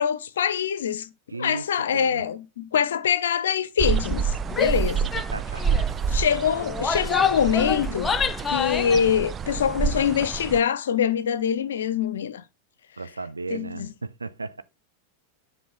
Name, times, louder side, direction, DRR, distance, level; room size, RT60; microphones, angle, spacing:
voice 1, 0.0-1.1 1.4-5.1 6.1-8.1 8.5-12.4 13.5-13.9, left 8 dB, 65° left, 0.7 m, -24 dB
voice 2, 1.3-1.6 1.9-2.2 5.3-5.6 8.8-9.2 13.0-14.6, right 3 dB, 80° right, 0.7 m, -35 dB
sound 1, 3.8-10.6, right 6 dB, 25° right, 0.5 m, -28 dB
Female speech woman speaking / Yell, 4.5-4.8 5.1-5.3 5.6-5.9 6.6-9.0, left 6 dB, 15° left, 0.7 m, -27 dB
10.0 x 5.6 x 3.6 m
figure-of-eight pair, 90°, 0 cm